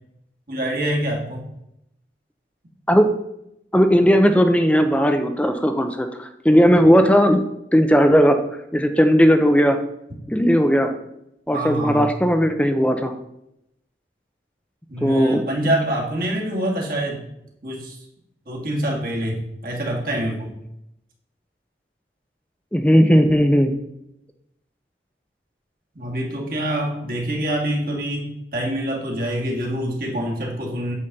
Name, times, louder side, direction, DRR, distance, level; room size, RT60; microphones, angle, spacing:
voice 1, 0.5-1.5 11.5-12.2 14.9-17.2 17.6-18.0 18.5-20.5 25.9-31.0, right 1 dB, 55° right, -1 dB, 2.0 m, -26 dB
voice 2, 3.7-7.4 7.7-8.4 8.7-9.8 10.3-10.9 11.5-13.1 15.0-15.4 22.7-23.7, equal, 5° left, 7 dB, 0.6 m, -16 dB
8.5 x 4.3 x 6.6 m, 0.81 s
head